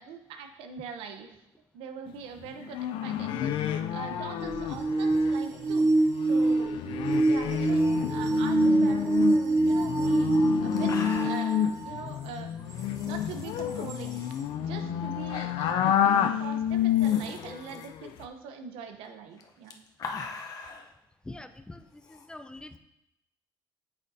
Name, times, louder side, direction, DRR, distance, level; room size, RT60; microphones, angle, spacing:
voice 1, 0.0-1.3 1.7-3.5 3.9-6.7 7.3-10.3 10.6-11.0 11.2-12.5 13.0-19.8, right 6 dB, 90° right, 6 dB, 0.8 m, -42 dB
sound 1, 2.6-5.3 5.7-5.8 6.1-17.5 17.8-18.2, left 10 dB, 70° left, 0.5 m, -29 dB
sound 2, 4.4-12.1 12.8-12.9 13.9-14.0, right 2 dB, 35° right, 0.8 m, -25 dB
sound 3, 10.0-10.1 10.4-10.5 10.7-11.6 12.7-14.4 15.3-15.6 15.9-16.0 16.7-17.9 19.3-20.9 22.0-22.3, left 4 dB, 40° left, 0.8 m, -42 dB
voice 2, 21.2-22.8, left 2 dB, 10° left, 10 dB, 0.4 m, -44 dB
8.8 x 6.2 x 2.7 m, 0.85 s
cardioid pair, 130°, 9 cm